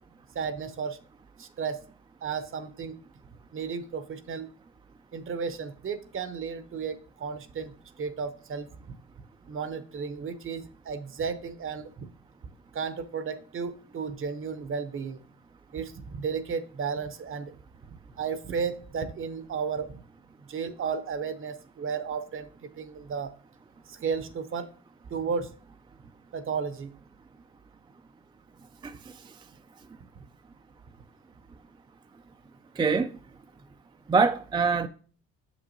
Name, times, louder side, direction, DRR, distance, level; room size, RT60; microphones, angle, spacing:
voice 1, 0.3-1.0 1.4-1.8 2.2-3.0 3.5-4.5 5.1-8.7 9.5-12.1 12.7-15.2 15.7-17.5 18.2-20.0 20.5-23.3 23.9-24.7 25.1-25.5 26.3-26.9, right 6 dB, 45° right, 0.7 m, -33 dB
voice 2, 28.8-29.3 32.8-33.1 34.1-34.9, right 4 dB, 15° right, 0.3 m, -25 dB
7.0 x 6.0 x 2.7 m
cardioid pair, 90°, 30 cm